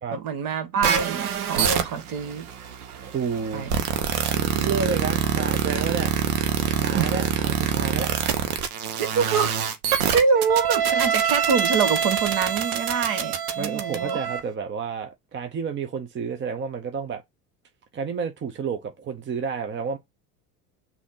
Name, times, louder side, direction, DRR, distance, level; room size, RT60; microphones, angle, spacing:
voice 1, 0.1-2.5 3.5-3.8 6.9-7.1 9.0-9.5 9.9-14.2, right 6 dB, 45° right, 1.3 m, -25 dB
sound 1, 0.8-14.4, right 8 dB, 70° right, 1.3 m, -25 dB
voice 2, 3.0-3.7 4.3-6.1 6.8-8.1 13.6-17.2 17.9-20.0, right 6 dB, 25° right, 0.9 m, -30 dB
6.2 x 2.9 x 5.5 m
hypercardioid pair, 70°, 47 cm